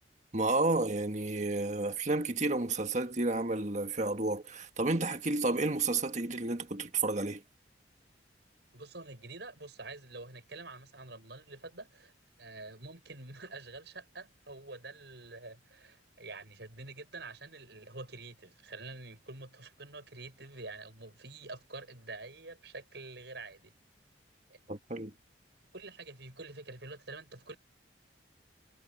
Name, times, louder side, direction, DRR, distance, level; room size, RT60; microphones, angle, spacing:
voice 1, 0.3-7.4 24.7-25.1, right 2 dB, 40° right, 1.6 m, -31 dB
voice 2, 8.7-12.1 12.4-23.7 24.5-24.6 25.7-27.6, right 3 dB, 65° right, 6.7 m, -47 dB
head